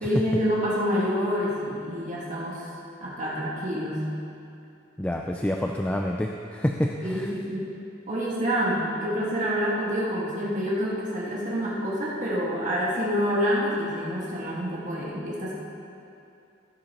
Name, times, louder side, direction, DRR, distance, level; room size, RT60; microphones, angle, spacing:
voice 1, 0.0-2.7 3.0-4.1 7.0-7.7 8.1-15.5, equal, 40° right, -6 dB, 1.8 m, -27 dB
voice 2, 5.0-7.3, left 1 dB, 5° left, 1 dB, 0.3 m, -28 dB
15.5 x 7.8 x 3.0 m, 2.7 s
head